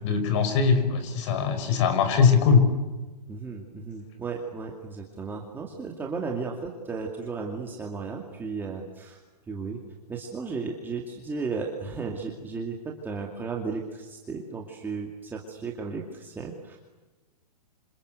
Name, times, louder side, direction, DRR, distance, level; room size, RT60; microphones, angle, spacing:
voice 1, 0.0-2.7, left 6 dB, 45° left, 9 dB, 5.7 m, -21 dB
voice 2, 3.3-9.2 9.5-9.8 10.1-16.8, right 4 dB, 10° right, 0 dB, 2.4 m, -34 dB
27.0 x 27.0 x 8.1 m, 1.2 s
hypercardioid pair, 150°, 21 cm